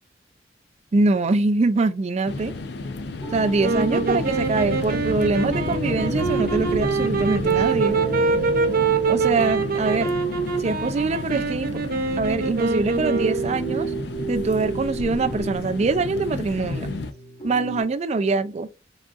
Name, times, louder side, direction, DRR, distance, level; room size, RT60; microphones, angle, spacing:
voice 1, 0.9-2.5 3.3-8.0 9.1-10.1 10.6-11.7 12.2-13.9 14.3-16.9 17.4-18.7, right 3 dB, 35° right, 0.4 m, -23 dB
sound 1, 2.3-17.1, left 2 dB, 65° left, 0.5 m, -31 dB
sound 2, 3.0-17.8, right 5 dB, 40° left, 1.3 m, -35 dB
sound 3, 3.6-13.6, right 5 dB, 50° right, 0.7 m, -24 dB
3.8 x 3.6 x 2.4 m
head